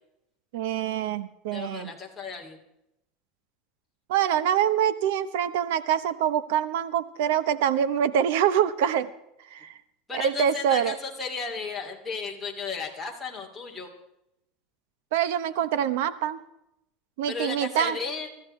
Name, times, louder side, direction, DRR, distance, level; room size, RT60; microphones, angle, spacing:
voice 1, 0.5-1.9 4.1-9.1 9.5-9.8 10.1-11.0 15.1-16.4 17.2-18.0, right 9 dB, 75° right, 15 dB, 1.0 m, -25 dB
voice 2, 1.5-2.6 10.1-13.9 17.3-18.3, left 4 dB, 5° left, -3 dB, 2.6 m, -34 dB
23.5 x 14.0 x 3.2 m, 0.83 s
supercardioid pair, 165°, 0 cm